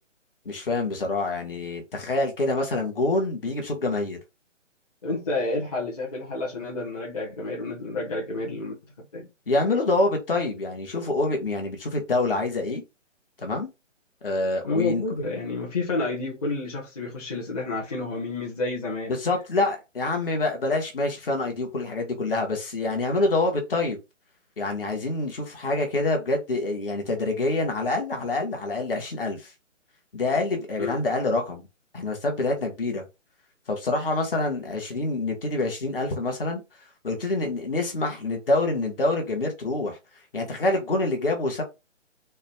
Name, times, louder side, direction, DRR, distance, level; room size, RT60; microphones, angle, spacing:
voice 1, 0.4-4.2 9.5-12.8 13.4-13.7 14.2-15.0 19.1-24.0 24.6-29.5 30.1-31.6 31.9-33.0 33.7-36.6 37.0-40.0 40.3-41.6, left 2 dB, 45° left, 1.6 m, -26 dB
voice 2, 5.0-8.7 9.1-9.3 14.6-19.1 30.8-31.0, left 3 dB, 30° left, 1.3 m, -29 dB
6.3 x 2.4 x 3.5 m
hypercardioid pair, 170°, 38 cm